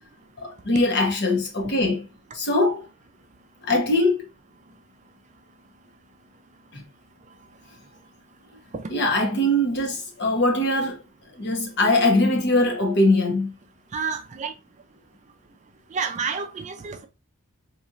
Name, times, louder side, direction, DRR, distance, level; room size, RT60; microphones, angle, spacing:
voice 1, 0.4-2.1 2.3-2.8 3.6-4.2 6.7-6.8 8.9-11.0 11.4-13.5, left 1 dB, 50° left, 0.9 m, -22 dB
voice 2, 13.9-14.5 15.9-17.1, right 5 dB, 35° right, 0.4 m, -29 dB
4.2 x 2.9 x 2.4 m
head